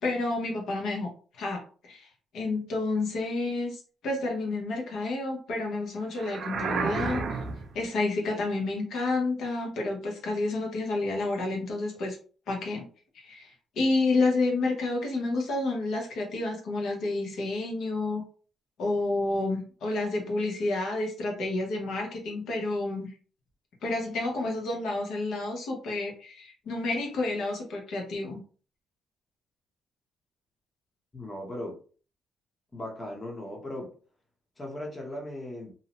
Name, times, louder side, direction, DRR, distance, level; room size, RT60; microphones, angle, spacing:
voice 1, 0.0-1.1 1.4-2.1 2.3-7.4 7.7-12.2 12.5-12.9 13.1-18.2 18.8-23.1 23.8-28.4, left 2 dB, 70° left, 0.9 m, -30 dB
sound 1, 6.2-7.8, right 4 dB, 55° right, 0.5 m, -31 dB
voice 2, 31.1-31.8 32.7-33.9 34.6-35.7, left 1 dB, 20° left, 0.8 m, -37 dB
2.6 x 2.1 x 2.9 m
cardioid pair, 105°, 0 cm